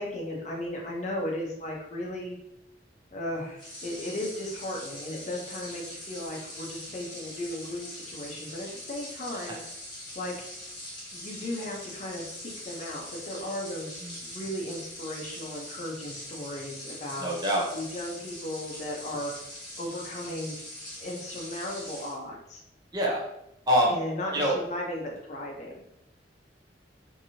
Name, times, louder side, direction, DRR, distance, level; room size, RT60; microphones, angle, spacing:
voice 1, 0.0-2.4 3.1-9.6 10.1-10.5 11.1-17.3 17.7-19.3 19.8-20.6 21.0-22.6 23.9-25.8, left 1 dB, 40° left, -1 dB, 0.6 m, -36 dB
sound 1, 3.5-22.2, left 1 dB, 25° left, 1.0 m, -42 dB
voice 2, 17.2-17.7 22.9-23.2 23.7-24.0 24.3-24.5, equal, 25° right, -3 dB, 0.6 m, -25 dB
2.9 x 2.6 x 2.7 m, 0.81 s
head